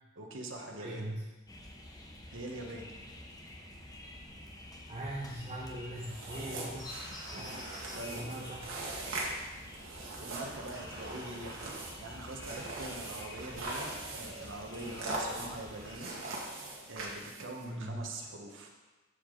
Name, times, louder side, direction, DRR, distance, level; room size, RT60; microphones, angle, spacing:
voice 1, 0.1-1.1 2.3-2.9 7.9-8.4 10.2-11.6 12.0-16.1 16.9-18.7, right 2 dB, 65° right, 1 dB, 1.4 m, -43 dB
voice 2, 0.8-1.2 4.9-6.9 7.3-7.8 8.1-8.7 17.6-18.0, right 1 dB, 35° right, -5 dB, 1.4 m, -40 dB
sound 1, 1.5-16.0, left 1 dB, 20° left, 1.1 m, -49 dB
sound 2, 6.0-17.6, right 2 dB, 85° right, 1.9 m, -41 dB
14.0 x 5.2 x 4.0 m, 1.2 s
head